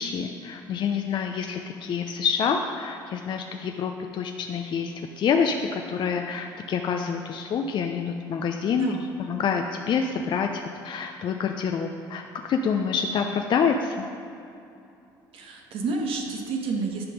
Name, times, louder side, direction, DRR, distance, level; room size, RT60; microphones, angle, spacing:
voice 1, 0.0-8.9 9.3-14.0, left 6 dB, 45° left, 4 dB, 0.7 m, -27 dB
voice 2, 15.3-17.0, right 4 dB, 55° right, 1 dB, 1.5 m, -29 dB
10.5 x 6.0 x 5.2 m, 2.6 s
hypercardioid pair, 60°, 11 cm